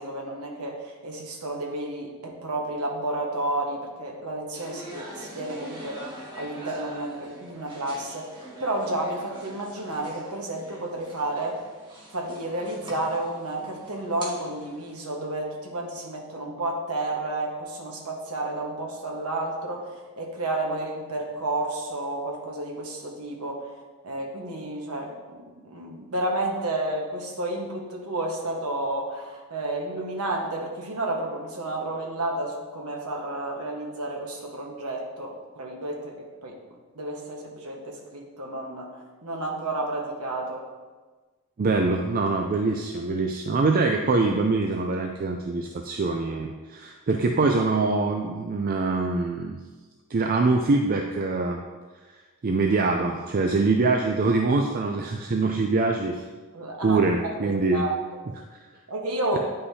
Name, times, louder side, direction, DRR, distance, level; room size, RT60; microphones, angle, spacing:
voice 1, 0.0-11.6 12.1-23.7 24.0-38.9 39.2-40.6 56.5-58.0 58.9-59.4, right 2 dB, 80° right, 0 dB, 1.3 m, -31 dB
sound 1, 4.5-14.9, right 1 dB, 20° right, 1.5 m, -43 dB
voice 2, 41.6-49.6 50.1-51.6 52.4-56.2 56.8-57.9, right 3 dB, 40° right, 3 dB, 0.4 m, -24 dB
9.9 x 5.5 x 2.8 m, 1.3 s
head